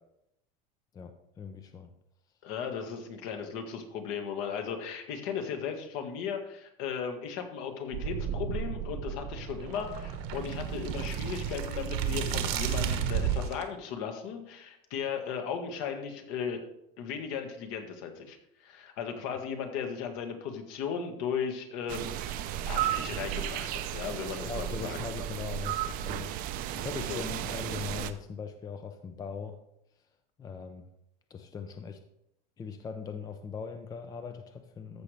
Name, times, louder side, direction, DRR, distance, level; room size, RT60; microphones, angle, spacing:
voice 1, 0.9-1.9 24.4-29.6 30.4-30.9 31.3-32.0 32.6-35.0, left 6 dB, 15° left, 7 dB, 0.5 m, -40 dB
voice 2, 2.4-16.6 17.0-25.0 27.1-27.2, left 7 dB, 60° left, 5 dB, 1.7 m, -36 dB
sound 1, 7.9-13.6, right 8 dB, 60° right, 1.2 m, -32 dB
sound 2, 21.9-28.1, right 11 dB, 45° right, 0.6 m, -34 dB
14.0 x 6.4 x 3.4 m, 0.81 s
supercardioid pair, 150°, 21 cm